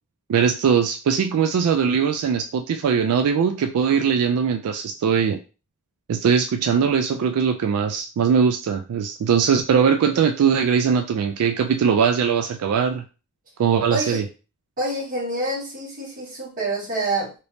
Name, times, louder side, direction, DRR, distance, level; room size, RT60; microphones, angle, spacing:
voice 1, 0.3-5.4 6.1-13.0 13.6-14.2, right 6 dB, 85° right, 7 dB, 0.3 m, -20 dB
voice 2, 13.9-14.2 14.8-17.3, right 2 dB, 40° right, -6 dB, 1.7 m, -27 dB
3.3 x 2.9 x 2.6 m, 0.33 s
head